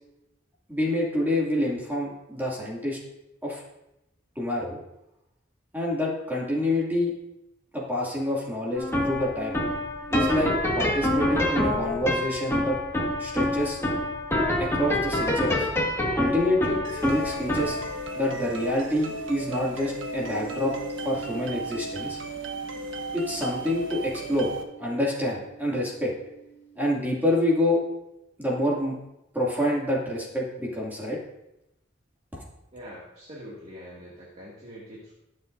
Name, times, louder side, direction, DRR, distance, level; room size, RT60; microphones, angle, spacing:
voice 1, 0.7-3.0 3.4-3.6 4.4-4.8 5.7-7.1 7.7-9.6 10.1-12.8 13.2-13.8 14.6-15.7 16.2-17.8 18.1-20.7 21.0-22.2 23.1-24.5 24.8-26.1 26.8-27.8 28.4-29.0 29.3-31.2 32.3-32.4, left 1 dB, 10° right, -4 dB, 2.5 m, -27 dB
sound 1, 8.8-26.0, left 1 dB, 15° left, 1.8 m, -29 dB
sound 2, 16.8-24.6, right 2 dB, 85° right, 1.3 m, -36 dB
voice 2, 32.7-35.1, equal, 35° right, -5 dB, 2.3 m, -44 dB
21.0 x 7.6 x 2.7 m, 0.88 s
head